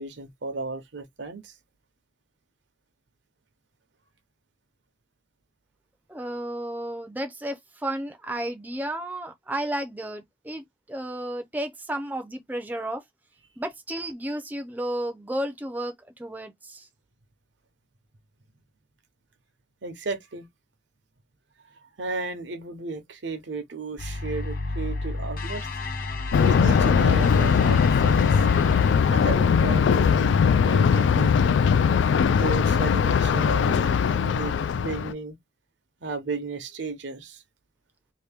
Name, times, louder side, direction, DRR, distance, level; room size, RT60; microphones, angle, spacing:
voice 1, 0.0-1.5 19.8-20.5 21.7-25.7 26.4-28.4 29.1-31.6 32.3-35.4 36.0-37.4, right 3 dB, 75° right, 0.9 m, -34 dB
voice 2, 6.1-13.0 13.6-15.9 16.2-16.9, right 1 dB, 10° right, 0.5 m, -32 dB
sound 1, 24.0-29.0, left 2 dB, 50° left, 0.7 m, -30 dB
Thunder, 26.3-35.1, left 6 dB, 75° left, 0.3 m, -20 dB
2.8 x 2.6 x 3.4 m
head